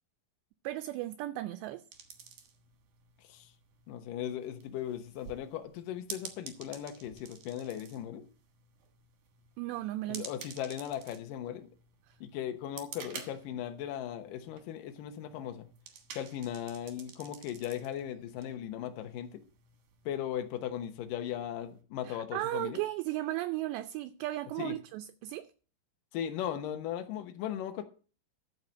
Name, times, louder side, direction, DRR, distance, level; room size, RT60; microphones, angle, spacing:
voice 1, 0.6-1.8 9.6-10.2 12.1-12.2 22.0-25.4, right 16 dB, 80° right, 2.6 m, -35 dB
sound 1, 1.9-21.8, right 7 dB, 60° right, 2.2 m, -51 dB
voice 2, 3.9-8.2 10.1-11.7 12.2-15.7 16.2-19.4 20.1-22.8 24.6-24.7 26.1-27.8, left 10 dB, 75° left, 2.0 m, -38 dB
13.5 x 4.9 x 7.1 m
omnidirectional pair, 5.3 m